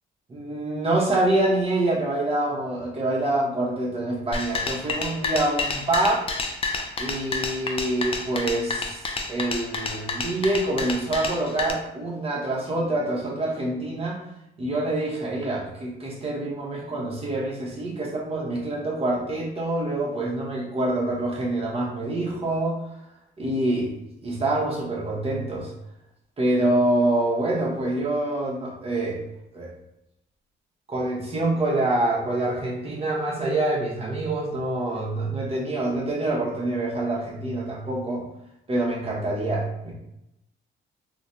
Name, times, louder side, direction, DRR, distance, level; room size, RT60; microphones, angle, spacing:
voice 1, 0.3-6.3 7.0-14.2 14.6-22.8 23.4-25.7 26.4-29.2 29.5-29.7 30.9-38.3 38.7-39.9, right 2 dB, 30° right, -3 dB, 1.0 m, -26 dB
sound 1, 4.3-11.7, left 3 dB, 30° left, 0.4 m, -29 dB
3.2 x 2.2 x 2.6 m, 0.84 s
cardioid pair, 90°, 20 cm